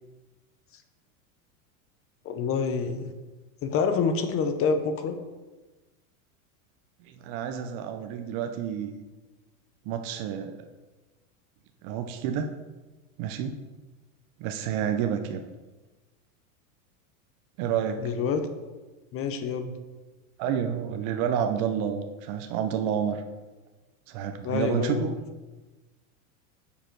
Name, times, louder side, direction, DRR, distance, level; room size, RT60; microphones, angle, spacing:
voice 1, 2.2-3.1 3.6-5.2 18.0-18.5 19.1-19.8 24.4-25.2, left 5 dB, 30° left, 8 dB, 0.7 m, -27 dB
voice 2, 7.2-9.0 9.9-10.6 11.8-12.5 13.2-13.6 14.4-15.4 17.6-18.0 20.4-23.2 24.1-25.1, right 8 dB, 50° right, 6 dB, 0.7 m, -29 dB
6.8 x 4.9 x 4.5 m, 1.2 s
supercardioid pair, 115°, 42 cm